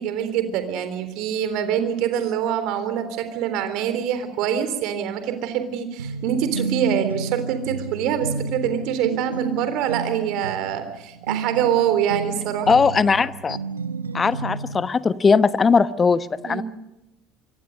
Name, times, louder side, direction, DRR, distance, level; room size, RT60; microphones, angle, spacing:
voice 1, 0.0-12.7 16.4-16.6, right 9 dB, 55° right, 10 dB, 3.7 m, -25 dB
sound 1, 6.0-14.9, right 4 dB, 80° right, 1.2 m, -31 dB
voice 2, 12.7-13.6 14.1-16.6, left 5 dB, 25° left, 15 dB, 1.1 m, -19 dB
26.0 x 23.5 x 6.6 m, 0.91 s
figure-of-eight pair, 65°, 0 cm